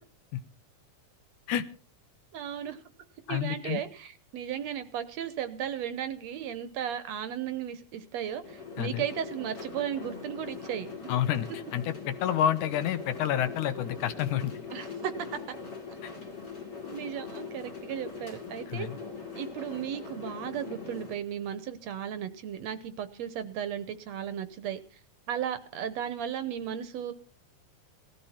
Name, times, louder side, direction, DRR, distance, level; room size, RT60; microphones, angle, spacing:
voice 1, 2.3-2.8 3.3-10.9 14.7-15.4 16.9-18.9 19.4-25.0 25.3-27.1, right 9 dB, 70° right, 12 dB, 2.0 m, -35 dB
voice 2, 3.3-3.8 8.8-9.0 11.1-14.5 16.0-16.1 18.7-19.0, left 10 dB, 80° left, 10 dB, 2.5 m, -29 dB
sound 1, 8.4-21.1, left 5 dB, 35° left, 2.4 m, -42 dB
18.0 x 14.0 x 4.4 m, 0.41 s
omnidirectional pair, 3.5 m